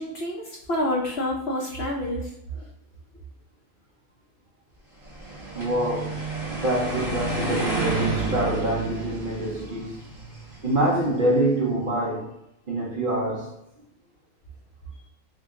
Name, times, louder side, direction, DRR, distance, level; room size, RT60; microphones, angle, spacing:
voice 1, 0.0-2.3, left 1 dB, 60° left, 0.8 m, -28 dB
sound 1, 5.1-11.2, right 2 dB, 15° right, 1.1 m, -31 dB
voice 2, 5.5-6.2 6.5-10.0 10.6-12.3 12.7-13.6, right 1 dB, 45° right, 0.8 m, -25 dB
3.7 x 2.1 x 3.5 m
omnidirectional pair, 1.5 m